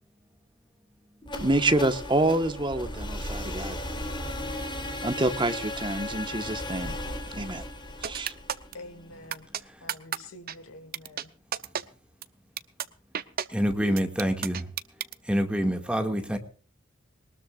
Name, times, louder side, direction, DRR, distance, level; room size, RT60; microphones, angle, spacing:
sound 1, 1.2-9.2, left 1 dB, 25° left, 3.6 m, -36 dB
voice 1, 1.4-3.8 5.0-7.0 7.3-7.6 8.0-8.3, right 2 dB, 25° right, 1.4 m, -27 dB
sound 2, 8.0-8.7 9.3-9.6 9.9-10.2 10.5-10.6 10.9-11.2 11.5-11.8 12.2-12.3 12.6-12.9 13.1-13.5 14.0-15.1, right 8 dB, 45° right, 0.8 m, -31 dB
voice 2, 8.7-9.5 9.8-11.3, left 2 dB, 85° left, 2.4 m, -46 dB
voice 3, 13.5-14.6 15.3-16.4, equal, 5° right, 2.1 m, -26 dB
21.5 x 20.0 x 2.5 m
head